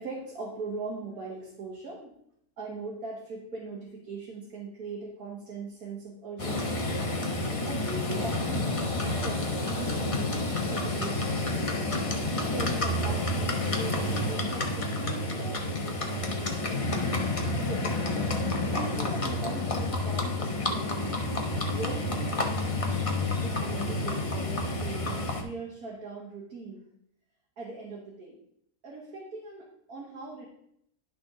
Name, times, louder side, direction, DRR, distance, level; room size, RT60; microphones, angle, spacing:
voice 1, 0.0-2.1 2.6-6.9 7.6-11.6 12.4-16.8 17.5-18.1 18.7-21.3 21.7-22.5 23.4-26.8 27.6-28.3 28.8-30.5, right 3 dB, 85° right, -3 dB, 2.0 m, -40 dB
Livestock farm animals working animals, 6.4-25.4, left 2 dB, 25° left, 0.9 m, -29 dB
11.0 x 6.1 x 3.7 m, 0.72 s
omnidirectional pair, 1.6 m